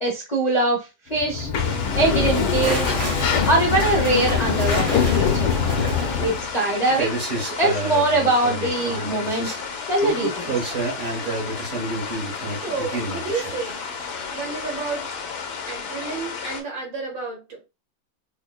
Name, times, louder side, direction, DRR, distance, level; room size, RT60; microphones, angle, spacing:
voice 1, 0.0-1.5 1.9-2.9 3.5-5.6 6.2-7.2 7.6-9.5 9.9-10.5, right 2 dB, 50° left, 0.4 m, -22 dB
Sliding door, 1.2-6.5, left 6 dB, 75° left, 1.3 m, -23 dB
sound 1, 1.6-16.6, left 5 dB, 90° left, 1.6 m, -33 dB
sound 2, 2.4-14.5 14.7-15.1, right 3 dB, 35° right, 0.8 m, -31 dB
voice 2, 12.6-13.8 14.3-15.1 15.6-17.6, right 4 dB, 70° right, 2.2 m, -31 dB
5.4 x 2.1 x 2.2 m
omnidirectional pair, 2.2 m